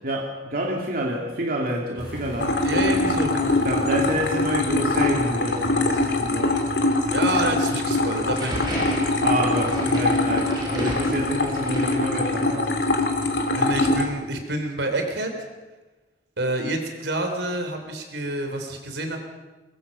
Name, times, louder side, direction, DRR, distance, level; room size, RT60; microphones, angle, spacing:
voice 1, 0.0-2.6 3.6-6.6 9.2-12.7, right 1 dB, 50° right, -1 dB, 2.5 m, -28 dB
sound 1, 2.0-11.4, equal, 25° left, 7.3 m, -42 dB
sound 2, 2.4-14.1, left 2 dB, 75° left, 2.9 m, -23 dB
voice 2, 2.6-3.6 7.1-8.9 13.5-15.3 16.4-19.2, right 1 dB, 75° right, 5 dB, 3.6 m, -28 dB
sound 3, 8.2-12.6, right 1 dB, 25° right, 5.3 m, -35 dB
22.5 x 21.5 x 5.6 m, 1.2 s
head